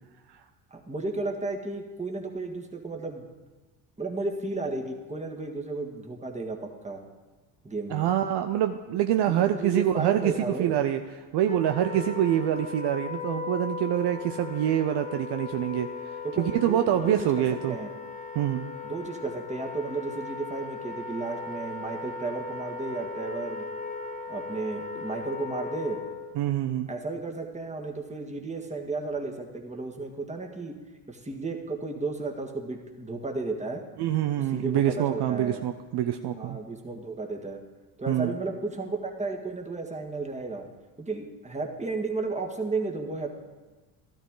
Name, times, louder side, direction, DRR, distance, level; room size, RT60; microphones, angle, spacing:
voice 1, 0.7-3.3 4.0-7.0 7.6-8.1 9.3-10.8 16.2-17.1 17.7-17.9 18.8-23.7 24.3-26.0 26.9-30.7 31.1-33.8 34.5-35.6 36.4-37.6 38.0-40.7 41.0-43.3, right 3 dB, 15° right, 2 dB, 1.9 m, -33 dB
voice 2, 7.9-10.3 10.6-11.0 11.3-15.9 16.4-17.8 18.3-18.7 26.4-26.9 34.0-36.6 38.1-38.3, right 11 dB, 55° right, 7 dB, 0.7 m, -25 dB
Wind instrument woodwind instrument, 11.5-26.4, left 4 dB, 15° left, 1.5 m, -37 dB
12.5 x 12.0 x 3.9 m, 1.2 s
hypercardioid pair, 65°, 48 cm